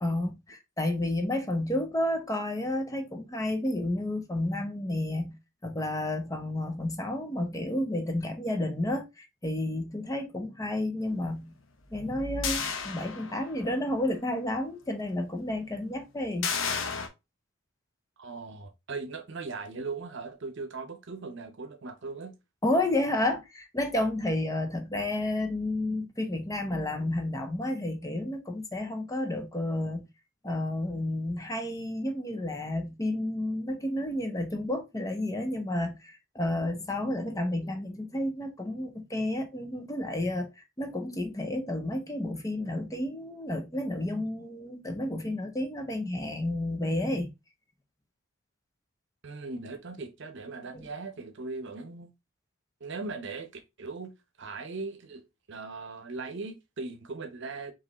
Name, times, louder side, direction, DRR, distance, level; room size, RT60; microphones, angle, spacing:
voice 1, 0.0-11.5 11.9-16.5 22.6-30.1 30.4-40.5 40.8-47.3 50.7-50.8, left 1 dB, 15° left, 0.6 m, -31 dB
sound 1, 12.4-13.7 14.1-14.2 16.4-17.1, left 6 dB, 65° left, 0.7 m, -32 dB
voice 2, 18.2-22.4 49.2-52.1 52.8-57.7, right 3 dB, 60° right, 0.8 m, -39 dB
4.7 x 3.1 x 2.9 m
head